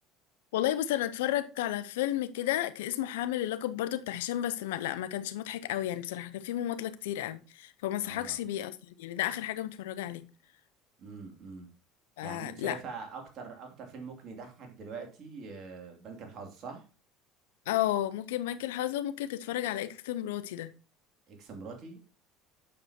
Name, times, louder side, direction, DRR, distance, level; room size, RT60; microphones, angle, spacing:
voice 1, 0.5-10.2 12.2-12.8 17.7-20.7, left 13 dB, 85° left, 0.6 m, -32 dB
voice 2, 8.0-8.4 11.0-11.7 12.2-16.8 21.3-22.0, right 4 dB, 50° right, 2.7 m, -44 dB
8.6 x 6.6 x 2.8 m
hypercardioid pair, 80°, 0 cm